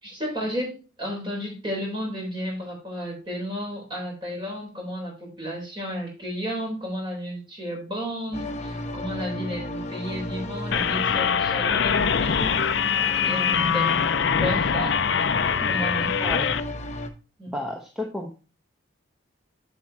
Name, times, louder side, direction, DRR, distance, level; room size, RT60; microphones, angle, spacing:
voice 1, 0.0-12.7 13.2-14.1 14.4-15.3 15.6-16.2 17.4-17.5, equal, 25° right, -1 dB, 3.7 m, -33 dB
sound 1, 8.3-17.1, left 1 dB, 35° left, 0.8 m, -34 dB
sound 2, 10.7-16.6, left 7 dB, 60° left, 0.5 m, -23 dB
voice 2, 16.2-16.6 17.5-18.4, left 1 dB, 5° right, 1 dB, 0.9 m, -32 dB
7.8 x 7.3 x 2.8 m, 0.33 s
head